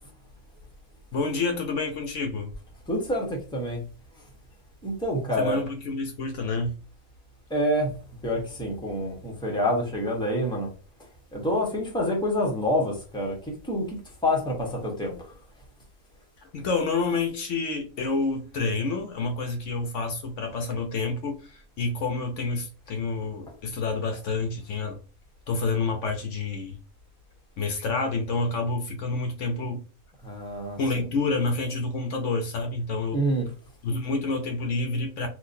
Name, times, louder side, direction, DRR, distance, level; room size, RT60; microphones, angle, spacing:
voice 1, 1.1-2.5 5.4-6.8 16.4-25.0 25.5-26.8 27.6-29.8 30.8-33.2 33.8-35.3, left 3 dB, 70° left, 1.0 m, -28 dB
voice 2, 2.9-3.8 4.8-5.6 7.5-7.9 8.2-10.7 11.3-15.4 30.2-31.1 33.1-33.5, equal, 5° left, 0.9 m, -27 dB
3.9 x 2.6 x 2.6 m
omnidirectional pair, 1.4 m